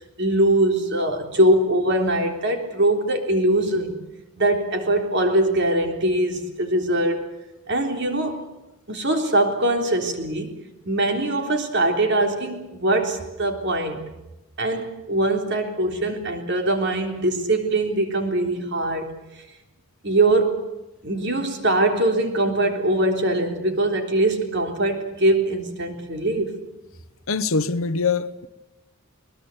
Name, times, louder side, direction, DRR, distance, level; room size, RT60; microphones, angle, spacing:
voice 1, 0.2-4.0 4.4-7.3 7.7-8.4 8.9-10.6 10.9-14.0 14.6-19.1 20.0-20.6 21.0-26.5, right 1 dB, 50° right, 3.7 m, -22 dB
voice 2, 27.3-28.5, left 4 dB, 65° left, 1.0 m, -23 dB
21.5 x 21.5 x 8.1 m
head